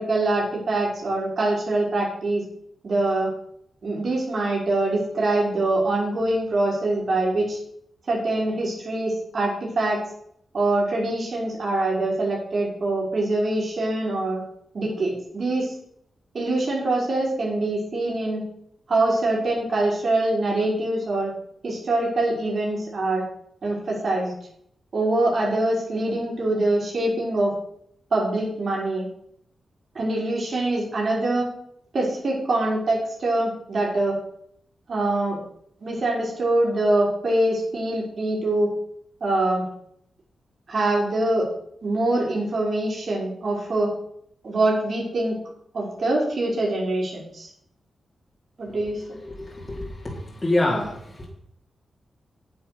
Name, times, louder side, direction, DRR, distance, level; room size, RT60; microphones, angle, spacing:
voice 1, 0.0-2.4 2.8-3.3 3.8-7.6 8.1-10.0 10.5-14.4 14.7-15.7 16.3-18.4 18.9-21.3 21.6-23.3 23.6-24.3 24.9-27.5 28.1-29.1 30.0-31.5 31.9-34.2 34.9-35.4 35.8-38.7 39.2-39.7 40.7-41.5 41.8-43.9 44.4-45.4 45.7-47.5 48.6-49.0, right 2 dB, 55° right, -2 dB, 5.3 m, -24 dB
voice 2, 49.5-50.1 50.4-50.9, left 1 dB, 30° left, -4 dB, 3.5 m, -24 dB
10.0 x 7.3 x 6.9 m, 0.71 s
cardioid pair, 70°, 0 cm